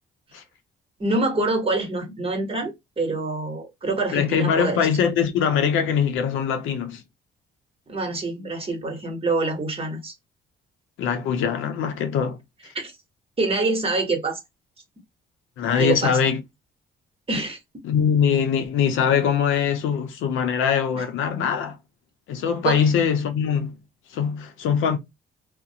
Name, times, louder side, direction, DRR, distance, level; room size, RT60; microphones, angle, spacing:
voice 1, 1.0-4.8 7.9-10.1 12.7-12.9 13.4-14.4 15.7-16.2 17.3-17.6 20.9-21.0 22.6-22.8, right 2 dB, 30° right, 1.1 m, -25 dB
voice 2, 4.1-7.0 11.0-12.4 15.6-16.4 17.8-21.8 22.3-23.8 24.1-25.0, left 7 dB, 85° left, 0.6 m, -22 dB
2.4 x 2.1 x 2.7 m
cardioid pair, 90°, 20 cm